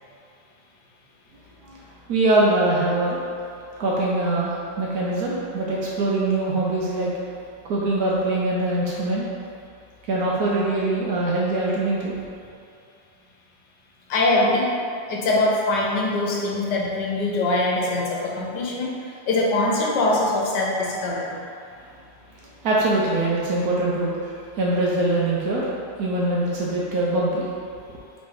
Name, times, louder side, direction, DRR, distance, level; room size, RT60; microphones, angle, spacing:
voice 1, 2.1-3.2 3.8-7.1 7.6-9.2 10.1-12.1 22.6-25.7 26.0-27.5 27.9-28.0, right 2 dB, 65° right, -5 dB, 1.0 m, -23 dB
voice 2, 14.1-14.7 15.1-18.9 19.3-21.4, left 2 dB, 75° left, -3 dB, 1.2 m, -22 dB
3.2 x 3.1 x 4.6 m, 2.5 s
omnidirectional pair, 2.0 m